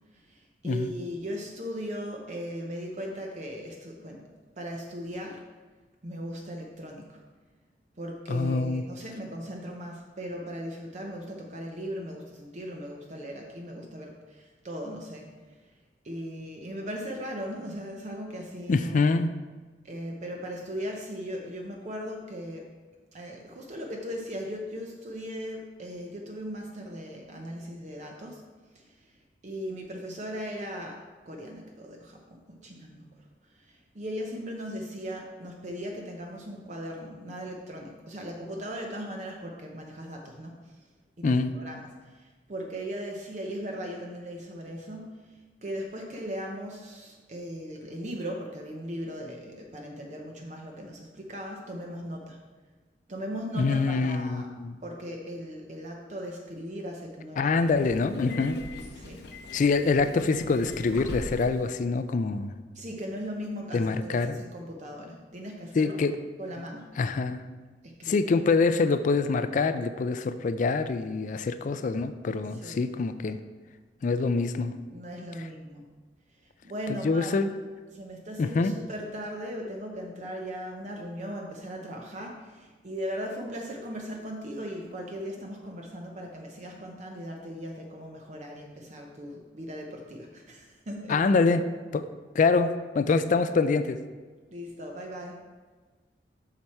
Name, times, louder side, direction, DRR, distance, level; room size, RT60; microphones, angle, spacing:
voice 1, 0.1-4.3 4.6-5.4 6.0-7.2 8.0-15.6 16.0-19.1 19.8-22.6 23.1-28.4 28.7-29.1 29.4-31.0 31.2-33.1 33.5-40.6 41.2-52.4 53.1-54.5 54.8-57.5 58.9-59.3 62.7-66.0 66.4-66.9 67.8-68.3 72.5-72.8 74.9-75.8 76.6-77.4 77.9-91.3 94.5-95.4, equal, 40° right, 1 dB, 0.7 m, -38 dB
voice 2, 8.3-8.8 18.7-19.3 41.2-41.5 53.5-54.7 57.4-58.6 59.5-62.6 63.7-64.4 65.8-66.2 67.0-67.4 68.1-73.4 74.0-74.7 75.4-75.5 76.9-77.5 78.4-78.7 91.1-91.6 91.9-92.1 92.3-94.0, left 4 dB, 45° left, 11 dB, 0.3 m, -25 dB
Subway metro underground, 57.4-61.7, left 2 dB, 65° left, 0.8 m, -40 dB
7.7 x 5.9 x 4.3 m, 1.4 s
head